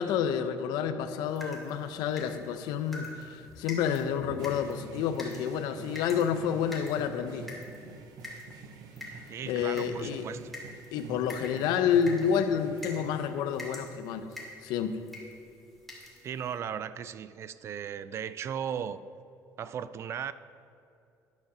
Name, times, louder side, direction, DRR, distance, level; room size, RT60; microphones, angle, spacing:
voice 1, 0.0-7.5 9.5-10.3 10.9-14.3 14.6-15.0, left 8 dB, 90° left, 10 dB, 0.6 m, -29 dB
sound 1, 1.2-16.6, left 1 dB, ahead, 2.2 m, -47 dB
sound 2, 3.8-13.8, right 4 dB, 70° right, 0.7 m, -47 dB
voice 2, 9.3-10.5 16.2-19.0 19.6-20.3, right 8 dB, 40° right, 15 dB, 0.3 m, -36 dB
10.5 x 5.6 x 6.0 m, 2.6 s
cardioid pair, 140°, 7 cm